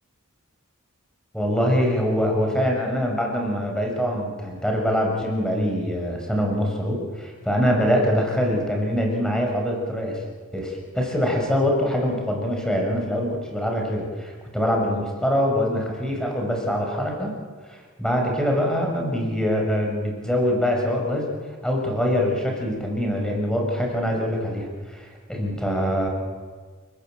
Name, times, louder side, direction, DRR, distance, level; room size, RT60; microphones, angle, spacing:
voice 1, 1.3-10.2 10.5-17.3 17.7-21.3 21.6-26.1, equal, 5° left, 0 dB, 5.8 m, -24 dB
29.0 x 19.5 x 7.9 m, 1.5 s
head